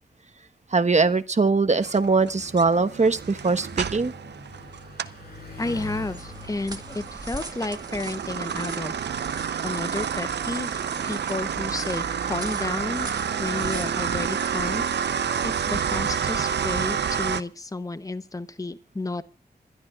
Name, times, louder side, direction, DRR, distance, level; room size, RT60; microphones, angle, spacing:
voice 1, 0.7-4.1 13.3-13.4, right 4 dB, 40° right, 9 dB, 1.2 m, -21 dB
Bicycle, 1.5-16.1, left 3 dB, 65° left, 6.1 m, -47 dB
sound 1, 1.8-5.2 5.6-17.4, right 7 dB, 85° right, 0.7 m, -29 dB
sound 2, 5.5-17.4, right 2 dB, 20° right, 1.7 m, -43 dB
voice 2, 5.6-8.9 9.6-13.1 13.4-19.2, left 2 dB, 20° left, 14 dB, 0.9 m, -32 dB
27.0 x 12.0 x 2.4 m, 0.30 s
cardioid pair, 50°, 17 cm